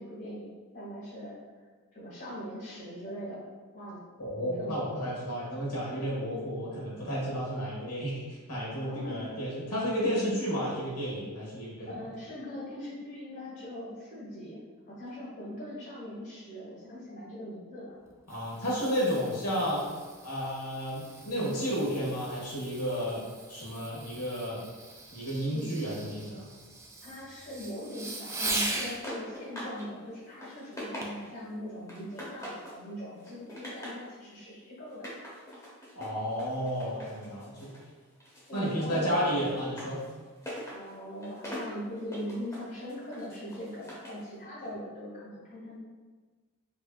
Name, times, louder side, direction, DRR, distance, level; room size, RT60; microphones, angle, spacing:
voice 1, 0.0-1.4 1.9-3.5 3.7-4.0 4.4-5.0 8.8-9.3 11.8-17.9 25.5-25.7 27.0-35.1 38.5-39.1 40.7-45.8, equal, 50° left, -7 dB, 1.4 m, -41 dB
voice 2, 4.2-11.9 18.3-19.8 20.2-24.6 25.1-26.5 35.9-37.7 38.5-40.0, equal, 90° left, -6 dB, 1.5 m, -32 dB
Fireworks, 18.0-29.0 31.0-31.3 31.9-32.0, right 2 dB, 15° right, 0.3 m, -40 dB
sound 1, 28.7-29.9 30.2-31.4 31.9-32.8 33.2-34.1 34.9-37.9 38.2-44.2, equal, 15° left, 0.9 m, -43 dB
4.9 x 2.7 x 2.3 m, 1.4 s
head